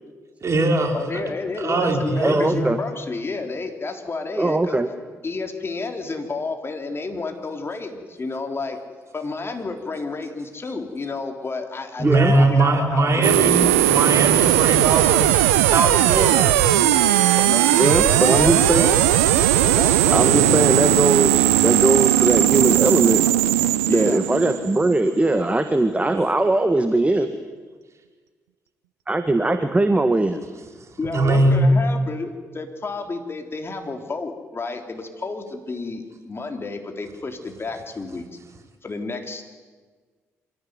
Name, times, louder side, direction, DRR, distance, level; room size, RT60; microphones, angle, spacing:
voice 1, 0.4-1.0 1.6-2.6 12.0-15.3 15.6-16.6 31.1-31.7, right 2 dB, 40° right, 4 dB, 4.3 m, -20 dB
voice 2, 0.9-4.8 5.2-8.8 9.1-14.1 17.4-19.3 19.6-21.0 23.9-24.2 31.0-38.3 38.8-39.5, left 3 dB, 35° left, 4 dB, 3.7 m, -31 dB
voice 3, 2.2-2.8 4.4-4.9 12.0-12.3 17.8-18.9 20.1-23.2 23.9-27.3 29.1-30.4, right 2 dB, 15° right, 8 dB, 1.8 m, -20 dB
sound 1, 13.2-25.2, right 13 dB, 80° right, 0.8 m, -18 dB
25.5 x 17.5 x 9.7 m, 1.4 s
figure-of-eight pair, 40°, 7 cm